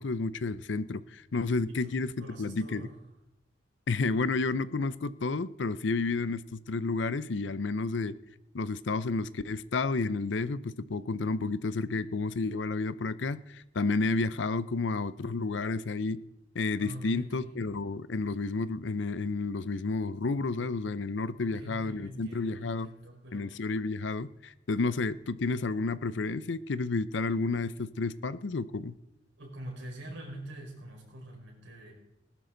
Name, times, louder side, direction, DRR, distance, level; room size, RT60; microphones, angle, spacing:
voice 1, 0.0-2.9 3.9-8.1 8.5-16.2 16.5-22.9 23.3-29.0, left 3 dB, 70° left, 16 dB, 0.6 m, -31 dB
voice 2, 2.2-3.0 11.9-12.1 16.8-17.6 21.4-23.5 29.4-31.9, right 1 dB, 80° right, -1 dB, 5.3 m, -44 dB
20.0 x 12.0 x 3.9 m, 0.85 s
head